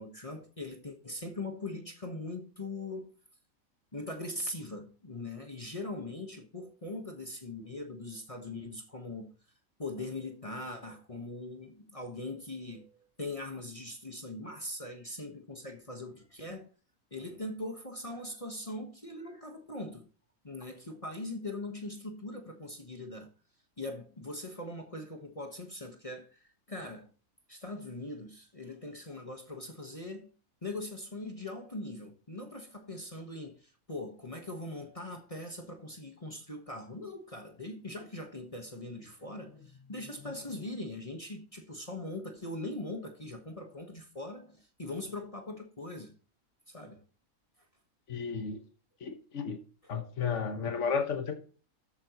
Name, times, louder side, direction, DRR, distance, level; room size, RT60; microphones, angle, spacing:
voice 1, 0.0-3.1 3.9-9.3 9.8-12.9 13.2-16.7 17.1-20.1 20.4-23.3 23.8-27.1 27.5-30.3 30.6-46.1 46.7-47.0, left 2 dB, 25° left, 1.4 m, -41 dB
voice 2, 48.1-48.6 49.0-49.6 49.9-51.4, left 6 dB, 60° left, 1.7 m, -33 dB
13.5 x 8.8 x 3.0 m
omnidirectional pair, 1.4 m